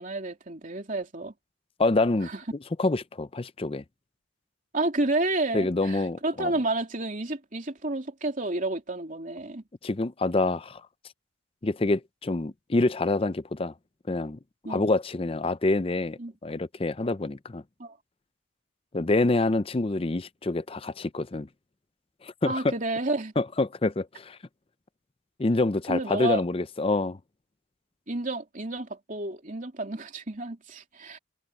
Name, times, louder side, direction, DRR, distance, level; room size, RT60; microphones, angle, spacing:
voice 1, 0.0-1.3 2.2-2.4 4.7-9.6 14.6-14.9 16.2-16.3 17.8-18.0 22.4-23.3 25.9-26.4 28.1-31.2, right 2 dB, 40° right, 3.2 m, -30 dB
voice 2, 1.8-2.3 2.8-3.8 5.5-6.5 9.8-10.8 11.6-13.7 14.1-14.4 14.7-17.6 18.9-21.5 22.2-22.6 23.4-24.4 25.4-27.2, left 2 dB, 25° left, 0.5 m, -26 dB
head